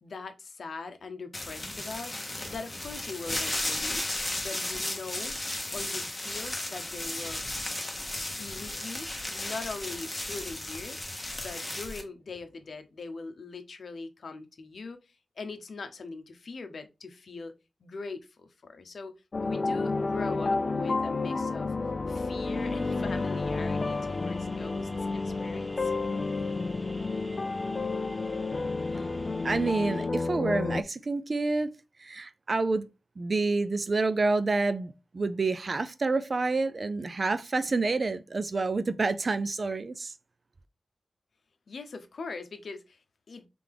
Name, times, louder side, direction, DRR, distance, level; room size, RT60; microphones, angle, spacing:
voice 1, 0.0-2.1 2.5-4.0 4.4-5.4 5.7-7.4 8.3-11.0 11.3-17.5 17.8-19.1 19.4-21.7 22.1-25.9 41.7-43.5, left 4 dB, 70° left, 0.7 m, -41 dB
sound 1, 1.3-12.0, left 1 dB, 20° left, 1.0 m, -35 dB
sound 2, 19.3-30.8, left 3 dB, 40° left, 0.3 m, -30 dB
sound 3, 22.4-30.1, left 1 dB, ahead, 0.7 m, -46 dB
voice 2, 29.4-31.7 32.0-32.9 33.2-40.1, right 3 dB, 40° right, 0.4 m, -28 dB
3.4 x 3.3 x 3.7 m
wide cardioid pair, 120°, 0 cm